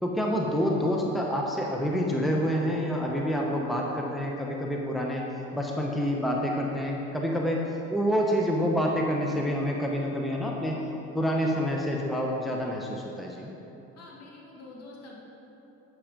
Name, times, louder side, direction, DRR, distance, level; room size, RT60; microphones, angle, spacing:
voice 1, 0.0-5.2 5.5-10.8 11.1-13.5, equal, ahead, -1 dB, 0.9 m, -27 dB
voice 2, 14.0-15.2, left 3 dB, 50° left, -4 dB, 1.9 m, -47 dB
8.4 x 5.6 x 5.2 m, 3.0 s
supercardioid pair, 75°, 33 cm